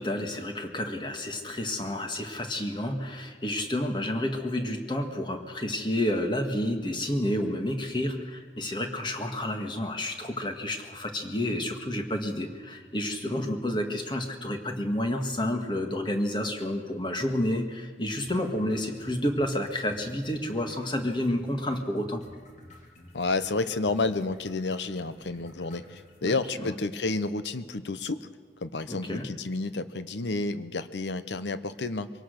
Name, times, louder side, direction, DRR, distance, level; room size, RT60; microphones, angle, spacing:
voice 1, 0.0-22.2 26.2-26.8 28.9-29.3, left 1 dB, 25° left, 5 dB, 1.7 m, -30 dB
sound 1, 18.2-26.2, left 1 dB, 40° left, 2.8 m, -52 dB
voice 2, 23.1-28.3 28.6-32.1, left 3 dB, 90° left, 13 dB, 0.9 m, -30 dB
23.0 x 18.0 x 6.6 m, 1.5 s
head